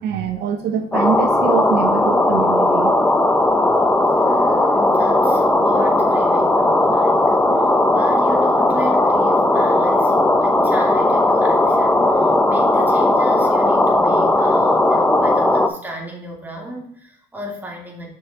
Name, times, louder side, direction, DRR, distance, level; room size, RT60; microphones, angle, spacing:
voice 1, 0.0-2.9, right 7 dB, 80° right, 6 dB, 1.0 m, -24 dB
sound 1, 0.9-15.7, left 2 dB, 10° left, 0.8 m, -16 dB
voice 2, 4.2-18.1, equal, 10° right, 0 dB, 2.4 m, -34 dB
6.3 x 5.9 x 4.6 m, 0.66 s
cardioid pair, 110°, 17 cm